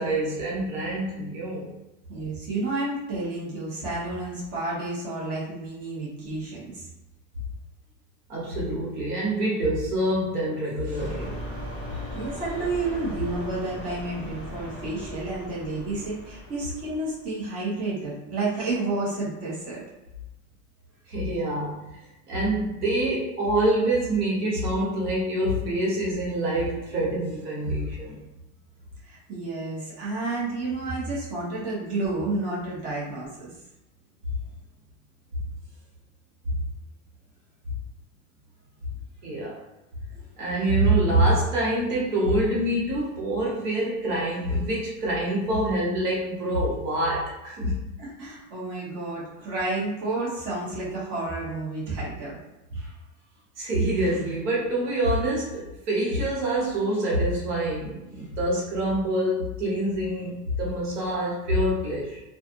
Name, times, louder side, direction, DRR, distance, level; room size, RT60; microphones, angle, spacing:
voice 1, 0.0-1.7 2.1-2.2 8.3-11.3 21.1-21.8 22.3-28.1 39.2-39.6 40.4-47.8 52.7-52.9 53.6-62.2, right 1 dB, 85° right, -5 dB, 1.3 m, -26 dB
voice 2, 2.1-6.9 11.9-19.8 29.0-33.5 48.0-52.4, right 2 dB, 30° right, -7 dB, 1.1 m, -30 dB
sound 1, 11.0-17.2, equal, 10° right, 0.9 m, -38 dB
2.5 x 2.5 x 2.5 m, 0.97 s
supercardioid pair, 140°, 45 cm